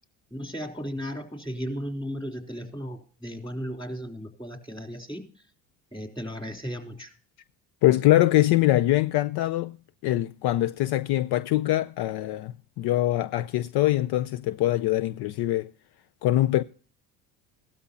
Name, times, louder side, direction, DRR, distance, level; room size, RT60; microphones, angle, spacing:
voice 1, 0.3-5.3 5.9-7.1, equal, 10° left, 3.3 m, -35 dB
voice 2, 7.8-9.8 10.0-15.7 16.2-16.6, left 15 dB, 60° left, 0.6 m, -23 dB
16.5 x 12.5 x 2.7 m
supercardioid pair, 85°, 44 cm